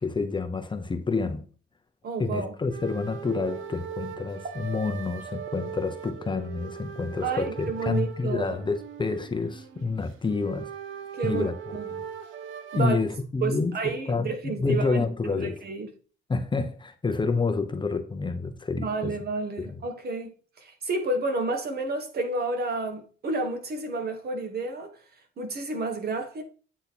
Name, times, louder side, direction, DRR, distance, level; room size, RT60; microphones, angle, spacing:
voice 1, 0.0-1.5 2.2-10.7 11.2-11.6 11.9-12.0 12.7-15.6 16.3-19.2 19.6-19.8, left 4 dB, 25° left, 0.8 m, -28 dB
voice 2, 2.0-2.5 7.2-8.5 11.1-11.9 12.7-13.0 13.4-15.9 18.8-24.9 25.4-26.4, right 3 dB, 50° right, 1.3 m, -30 dB
sound 1, 2.7-12.8, right 8 dB, 80° right, 0.8 m, -39 dB
8.3 x 2.9 x 4.2 m
cardioid pair, 90°, 20 cm